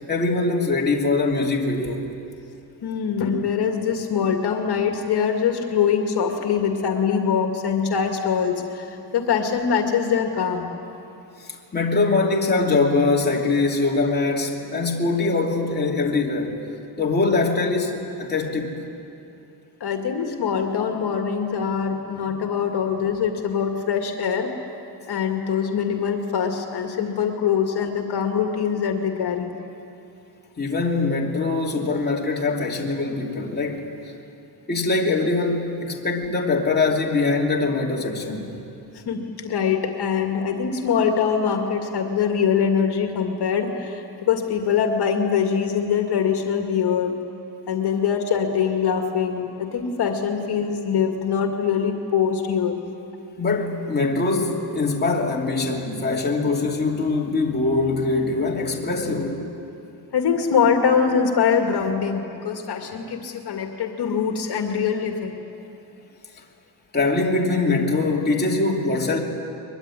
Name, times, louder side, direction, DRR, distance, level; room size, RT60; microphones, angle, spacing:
voice 1, 0.1-2.0 11.5-16.6 17.0-18.8 30.6-33.9 34.7-38.5 53.4-59.4 66.9-69.2, left 3 dB, 25° left, 2.8 m, -22 dB
voice 2, 2.8-10.7 19.8-24.5 25.1-29.5 38.9-47.2 47.7-52.8 60.1-65.4, left 7 dB, 65° left, 2.1 m, -23 dB
23.0 x 22.5 x 9.9 m
cardioid pair, 145°, 42 cm